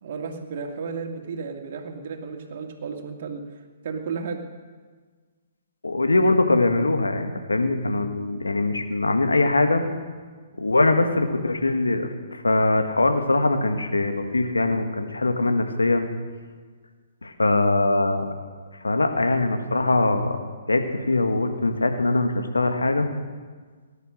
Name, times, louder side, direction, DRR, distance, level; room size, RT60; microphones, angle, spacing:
voice 1, 0.0-3.4 3.8-4.4, right 5 dB, 55° right, 3 dB, 2.3 m, -33 dB
voice 2, 5.8-9.8 10.6-16.1 17.2-18.3 18.8-20.4 20.7-23.1, left 2 dB, 85° left, 6 dB, 1.7 m, -22 dB
19.0 x 11.0 x 6.5 m, 1.5 s
figure-of-eight pair, 130°, 0 cm